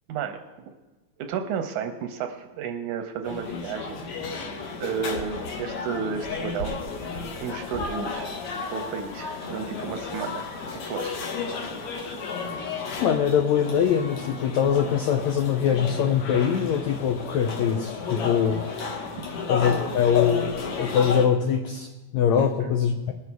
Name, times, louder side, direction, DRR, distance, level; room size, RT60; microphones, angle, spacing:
voice 1, 0.1-0.8 1.2-4.0 4.8-6.8 7.4-8.3 8.7-10.5 10.7-11.5 19.2-19.3 22.4-22.7, right 6 dB, 80° right, 5 dB, 1.9 m, -32 dB
sound 1, 3.2-21.3, left 4 dB, 60° left, 1.7 m, -33 dB
voice 2, 13.0-18.6 19.5-23.1, left 8 dB, 80° left, 4 dB, 1.6 m, -23 dB
20.0 x 7.0 x 4.6 m, 1.2 s
omnidirectional pair, 4.0 m